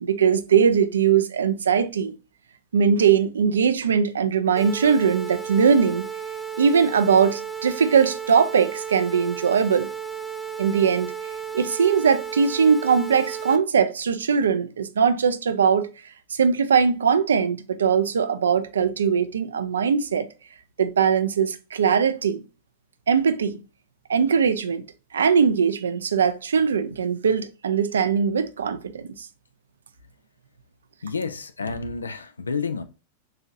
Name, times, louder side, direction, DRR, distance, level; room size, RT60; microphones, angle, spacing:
voice 1, 0.0-2.1 2.7-6.1 6.6-9.9 10.6-11.1 11.5-15.9 16.3-20.3 20.8-22.4 23.1-23.6 24.1-24.8 25.1-29.2, right 6 dB, 70° right, 0.4 m, -20 dB
sound 1, 4.6-13.6, right 7 dB, 5° right, 0.5 m, -34 dB
voice 2, 31.0-32.8, left 4 dB, 80° left, 0.4 m, -30 dB
3.9 x 2.8 x 2.4 m
figure-of-eight pair, 90°, 0 cm